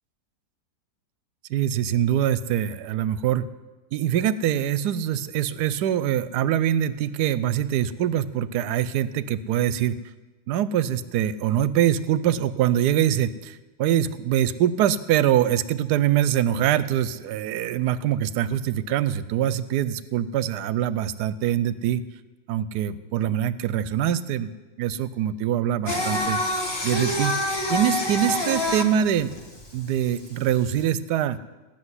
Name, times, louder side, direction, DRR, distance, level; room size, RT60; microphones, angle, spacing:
voice 1, 1.5-3.5 3.9-10.0 10.5-22.0 22.5-24.5 24.8-26.4 26.8-29.3 29.7-31.4, right 10 dB, 70° right, 16 dB, 1.1 m, -24 dB
Singing, 25.9-30.8, left 1 dB, 15° left, 1.0 m, -27 dB
16.0 x 7.0 x 9.7 m, 1.2 s
omnidirectional pair, 2.0 m